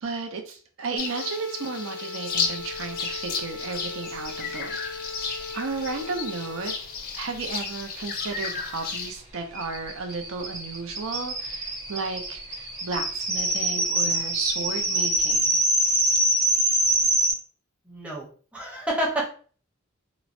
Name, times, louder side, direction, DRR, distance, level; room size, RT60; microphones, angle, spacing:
voice 1, 0.0-4.8 5.5-6.7 7.1-15.6, right 4 dB, 70° right, 4 dB, 0.6 m, -33 dB
sound 1, 1.0-9.1, left 5 dB, 45° left, 0.5 m, -33 dB
sound 2, 1.0-7.0, left 3 dB, 85° right, 1.1 m, -39 dB
sound 3, 7.6-7.7 8.0-8.1 8.3-17.3, right 1 dB, 35° right, 1.1 m, -25 dB
voice 2, 17.9-19.3, right 1 dB, 5° right, -2 dB, 0.7 m, -29 dB
3.0 x 2.1 x 2.5 m, 0.41 s
head